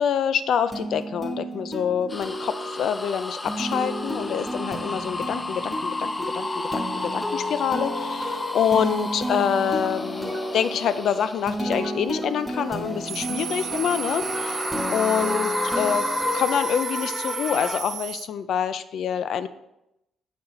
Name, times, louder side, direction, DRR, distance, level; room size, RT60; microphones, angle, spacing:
voice 1, 0.0-16.1 16.3-19.5, left 8 dB, 70° left, 13 dB, 0.4 m, -26 dB
sound 1, 0.7-17.4, equal, 5° right, 2.0 m, -32 dB
sound 2, 2.1-12.0 12.6-17.8, left 2 dB, 20° left, 0.5 m, -32 dB
sound 3, 13.1-18.3, right 10 dB, 70° right, 0.3 m, -33 dB
7.6 x 5.9 x 3.8 m, 0.87 s
cardioid pair, 90°, 0 cm